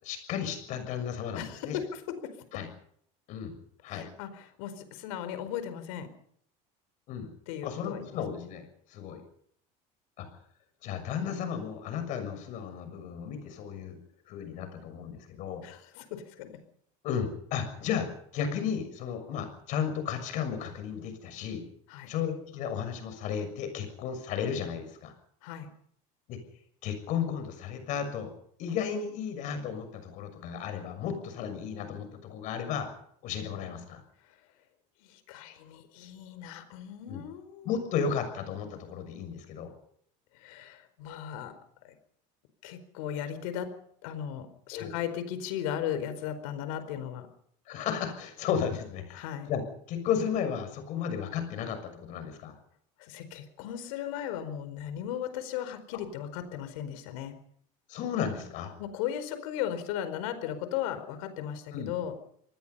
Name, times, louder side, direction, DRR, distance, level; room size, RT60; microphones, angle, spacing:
voice 1, 0.0-1.8 2.5-2.7 3.3-3.5 3.8-4.1 7.1-7.3 7.6-8.6 8.9-9.2 10.2-10.3 10.8-14.0 14.3-15.6 17.0-21.6 22.1-25.1 26.3-26.4 26.8-28.3 28.6-32.9 33.2-34.0 37.1-37.2 37.6-39.7 44.7-44.9 47.7-49.6 49.9-52.6 57.9-58.7 61.7-61.9, left 7 dB, 45° left, 8 dB, 6.5 m, -34 dB
voice 2, 1.3-2.4 3.9-6.1 7.5-8.2 15.6-16.6 21.9-22.1 25.4-25.7 34.2-34.4 35.0-37.7 40.3-41.9 42.6-43.7 44.0-47.3 49.1-49.5 53.0-57.3 58.8-62.1, left 10 dB, 85° left, 11 dB, 4.6 m, -37 dB
26.5 x 20.0 x 5.6 m, 0.68 s
cardioid pair, 170°, 17 cm